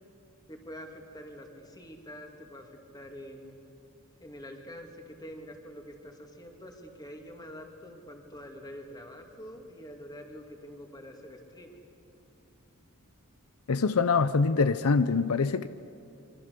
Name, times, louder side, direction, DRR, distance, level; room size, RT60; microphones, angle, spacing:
voice 1, 0.5-3.5 4.2-11.8, equal, 20° left, 2.7 m, -46 dB
voice 2, 13.7-15.7, left 4 dB, 75° left, 0.6 m, -24 dB
26.0 x 24.5 x 6.8 m
head